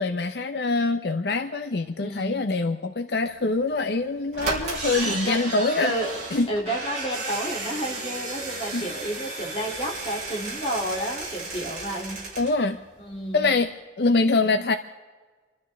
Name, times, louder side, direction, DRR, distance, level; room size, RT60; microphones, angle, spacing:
voice 1, 0.0-5.9 6.3-6.5 8.7-8.9 12.4-12.8 13.3-13.7 14.0-14.8, left 3 dB, 70° left, 7 dB, 0.7 m, -24 dB
voice 2, 2.0-2.4 5.2-5.4 5.8-6.2 6.5-12.3 13.0-13.5, right 1 dB, 30° left, -2 dB, 2.8 m, -30 dB
sound 1, 3.7-3.8 4.3-12.6 12.9-13.0 13.2-13.3, right 2 dB, 40° right, 4.0 m, -33 dB
27.5 x 12.5 x 3.5 m, 1.4 s
head